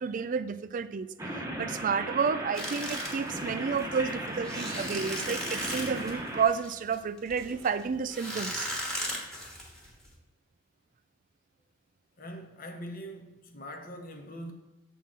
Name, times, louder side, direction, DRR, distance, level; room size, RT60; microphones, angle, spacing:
voice 1, 0.0-8.7, right 6 dB, 40° right, 0.3 m, -31 dB
sound 1, 1.2-6.4, right 1 dB, 15° right, 0.9 m, -37 dB
sound 2, 2.5-10.1, equal, 5° left, 1.2 m, -37 dB
voice 2, 12.2-14.5, equal, 45° left, 0.9 m, -42 dB
7.4 x 3.7 x 5.7 m
head